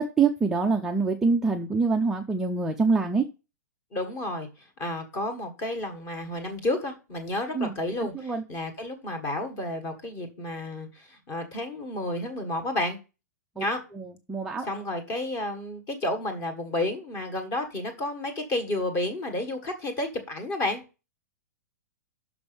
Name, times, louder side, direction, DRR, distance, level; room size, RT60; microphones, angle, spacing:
voice 1, 0.0-3.2 7.5-7.7 8.1-8.4 13.6-13.7 14.0-14.7, right 4 dB, 5° right, 2 dB, 0.3 m, -25 dB
voice 2, 3.9-13.0 13.5-13.8 14.6-20.8, left 1 dB, 25° left, 6 dB, 1.6 m, -31 dB
6.1 x 5.2 x 6.8 m, 0.31 s
hypercardioid pair, 170°, 9 cm